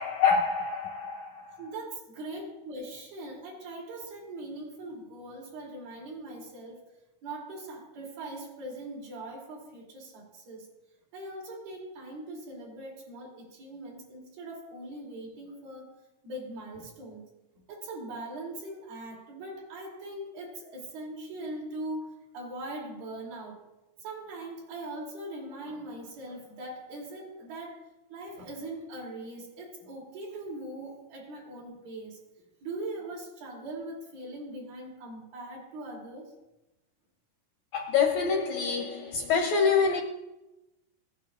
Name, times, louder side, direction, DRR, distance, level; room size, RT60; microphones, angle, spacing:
voice 1, 0.0-1.7 37.7-40.0, left 6 dB, 80° left, 1.6 m, -26 dB
voice 2, 1.5-6.8 7.2-10.7 11.1-15.9 16.2-17.2 17.7-23.6 24.0-27.8 28.1-32.2 32.6-36.3, right 1 dB, 90° right, 4.8 m, -41 dB
17.0 x 9.3 x 2.5 m
omnidirectional pair, 4.0 m